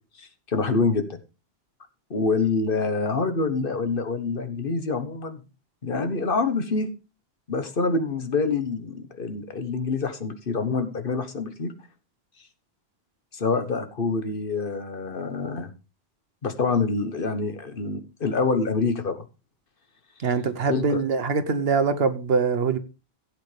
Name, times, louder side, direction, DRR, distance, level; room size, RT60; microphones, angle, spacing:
voice 1, 0.2-1.2 2.1-5.4 5.8-6.9 7.5-11.7 13.3-15.7 16.4-19.2 20.7-21.0, left 4 dB, 55° left, 1.4 m, -26 dB
voice 2, 20.2-22.8, right 5 dB, 70° right, 1.2 m, -23 dB
16.0 x 8.2 x 3.3 m
omnidirectional pair, 1.1 m